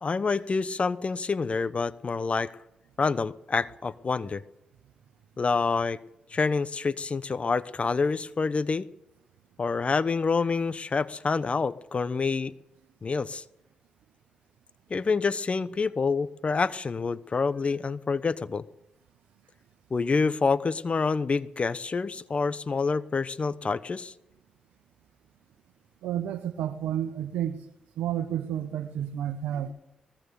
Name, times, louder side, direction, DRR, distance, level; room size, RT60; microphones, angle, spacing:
voice 1, 0.0-2.6 3.0-4.4 5.4-6.0 6.3-8.9 9.6-12.5 13.0-13.4 14.9-18.6 19.9-24.1, left 4 dB, 45° left, 16 dB, 1.0 m, -27 dB
voice 2, 26.0-27.6 28.0-29.7, right 10 dB, 90° right, 6 dB, 1.0 m, -31 dB
21.0 x 19.5 x 7.0 m, 0.88 s
supercardioid pair, 50°, 3 cm